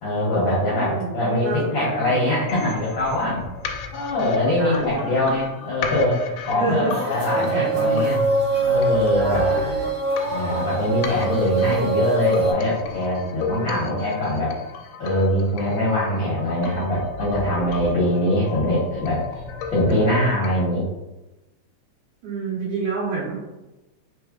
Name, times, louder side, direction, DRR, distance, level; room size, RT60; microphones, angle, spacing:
voice 1, 0.0-3.5 3.9-8.2 8.6-9.4 10.3-14.5 15.0-19.2 19.7-20.9, left 1 dB, 65° left, -7 dB, 1.2 m, -22 dB
voice 2, 0.7-2.3 4.6-5.3 6.5-8.1 9.2-9.8 13.2-14.0 22.2-23.4, right 4 dB, 75° right, -8 dB, 2.5 m, -29 dB
sound 1, 2.5-20.5, left 6 dB, 80° left, 1.7 m, -35 dB
sound 2, 6.9-12.5, right 3 dB, 60° right, 2.1 m, -23 dB
4.6 x 3.4 x 2.3 m, 1.0 s
omnidirectional pair, 3.4 m